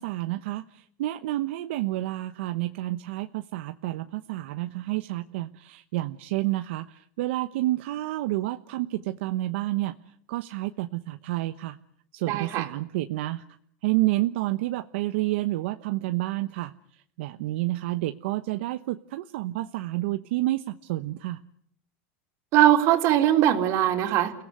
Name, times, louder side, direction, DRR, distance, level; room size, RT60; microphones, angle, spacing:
voice 1, 0.0-9.9 10.3-11.8 12.1-13.4 13.8-16.7 17.2-21.4, right 17 dB, 75° right, 9 dB, 1.0 m, -29 dB
voice 2, 12.3-12.7 22.5-24.3, right 12 dB, 45° right, 5 dB, 3.5 m, -21 dB
29.5 x 17.0 x 9.3 m, 0.67 s
supercardioid pair, 145°, 6 cm